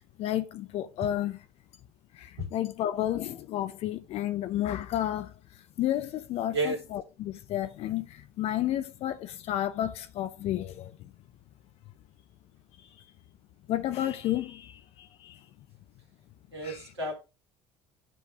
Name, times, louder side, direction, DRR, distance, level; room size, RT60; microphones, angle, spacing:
voice 1, 0.0-1.4 2.1-5.3 5.8-10.9 13.7-15.4 16.6-16.8, left 12 dB, 50° left, 0.8 m, -31 dB
voice 2, 16.5-17.1, right 2 dB, 80° right, 2.4 m, -31 dB
9.4 x 3.6 x 4.9 m
figure-of-eight pair, 60°, 14 cm